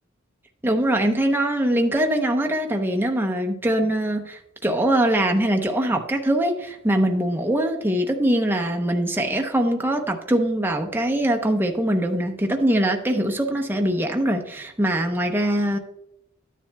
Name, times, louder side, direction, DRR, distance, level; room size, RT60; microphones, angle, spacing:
voice 1, 0.6-15.8, right 1 dB, 10° right, 1 dB, 0.8 m, -22 dB
12.5 x 10.0 x 2.3 m, 0.82 s
head